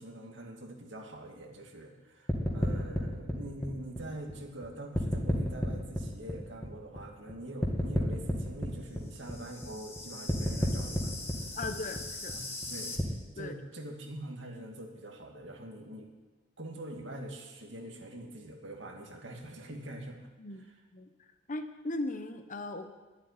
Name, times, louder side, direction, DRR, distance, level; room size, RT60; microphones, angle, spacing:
voice 1, 0.0-11.1 11.4-11.6 12.3-12.4 12.7-16.1 16.6-20.3 20.6-20.7, right 1 dB, 75° right, 2 dB, 2.1 m, -44 dB
sound 1, 2.3-4.6 4.9-7.3 7.6-13.0, equal, 15° left, 1.8 m, -32 dB
voice 2, 11.6-12.3 13.4-13.6 20.4-20.7 20.9-21.1 21.5-22.9, left 2 dB, 45° left, 8 dB, 1.0 m, -38 dB
11.5 x 7.8 x 9.8 m, 1.2 s
head